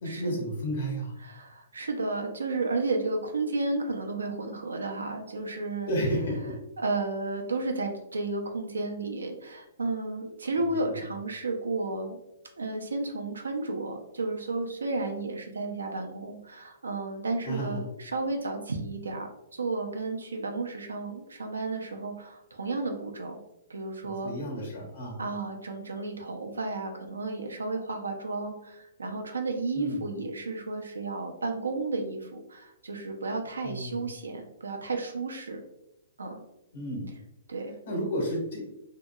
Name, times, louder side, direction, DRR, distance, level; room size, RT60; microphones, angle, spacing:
voice 1, 0.0-1.1 5.9-6.5 10.9-11.0 17.4-17.8 24.2-25.2 29.7-30.0 33.6-34.0 36.7-37.1 37.9-38.7, equal, 65° left, -2 dB, 1.3 m, -31 dB
voice 2, 1.2-5.9 6.8-12.2 12.6-23.4 23.7-24.3 25.2-35.6 36.2-36.4 37.5-37.7, right 3 dB, 85° right, 3 dB, 0.5 m, -32 dB
2.8 x 2.7 x 2.3 m, 0.86 s
hypercardioid pair, 120°, 0 cm